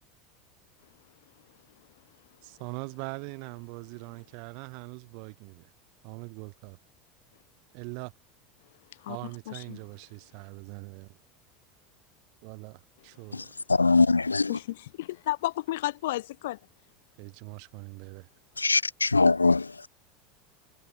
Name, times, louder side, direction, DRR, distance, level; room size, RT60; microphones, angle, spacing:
voice 1, 2.4-5.7 6.0-6.8 7.7-8.1 9.1-11.2 12.4-13.5 17.2-18.3, right 40 dB or more, 55° right, 4.0 m, -42 dB
voice 2, 9.5-9.8 14.5-16.6, left 16 dB, 65° left, 0.7 m, -32 dB
voice 3, 13.3-14.6 18.6-19.9, left 3 dB, 85° left, 0.3 m, -23 dB
figure-of-eight pair, 75°, 0 cm